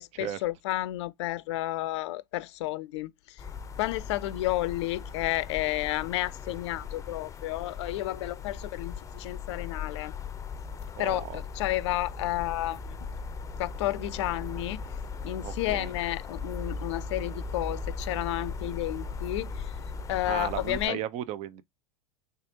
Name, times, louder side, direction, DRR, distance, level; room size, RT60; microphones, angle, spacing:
voice 1, 0.0-3.4 3.8-10.1 11.0-13.1 13.6-14.8 15.2-19.7 20.1-21.0, left 16 dB, 70° left, 0.4 m, -31 dB
sound 1, 3.4-20.9, left 4 dB, 20° left, 0.6 m, -38 dB
voice 2, 11.0-11.4 15.4-15.9 20.3-21.6, right 11 dB, 45° right, 0.6 m, -35 dB
3.5 x 3.3 x 2.8 m
hypercardioid pair, 90°, 15 cm